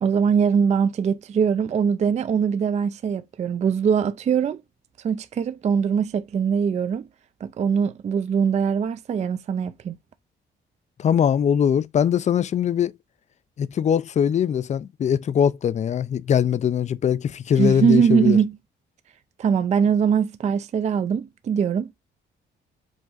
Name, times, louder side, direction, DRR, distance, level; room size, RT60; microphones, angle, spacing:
voice 1, 0.0-4.6 5.0-7.1 7.4-10.0 17.6-18.6 19.4-21.9, right 7 dB, 35° right, 0.4 m, -22 dB
voice 2, 11.0-12.9 13.6-18.4, left 8 dB, 35° left, 0.4 m, -21 dB
5.0 x 2.4 x 3.8 m
cardioid pair, 90°, 20 cm